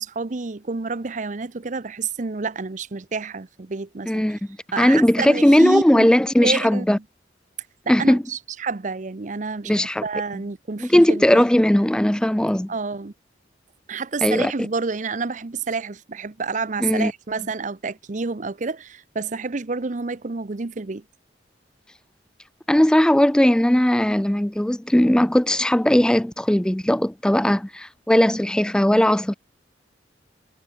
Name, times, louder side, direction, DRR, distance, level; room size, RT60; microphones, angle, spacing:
voice 1, 0.0-4.4 4.7-6.1 6.4-7.0 7.8-11.4 12.7-13.1 13.9-21.0, right 4 dB, 45° right, 0.7 m, -29 dB
voice 2, 4.1-4.4 4.8-7.0 7.9-8.2 9.7-10.0 10.8-12.7 14.2-14.5 16.8-17.1 22.7-29.3, left 1 dB, 5° left, 0.3 m, -18 dB
head